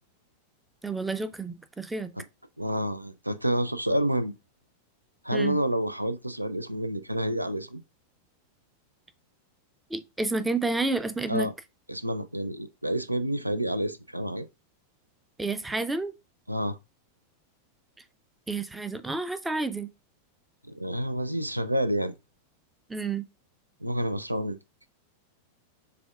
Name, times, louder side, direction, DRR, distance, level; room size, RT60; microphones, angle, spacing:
voice 1, 0.8-2.1 5.3-5.6 9.9-11.5 15.4-16.1 18.5-19.9 22.9-23.2, right 3 dB, 10° right, 0.4 m, -30 dB
voice 2, 2.6-4.3 5.2-7.8 11.3-11.5 11.9-14.5 16.5-16.8 20.7-22.1 23.8-24.6, right 1 dB, 85° right, 0.3 m, -28 dB
6.7 x 2.3 x 2.3 m
figure-of-eight pair, 90°, 0 cm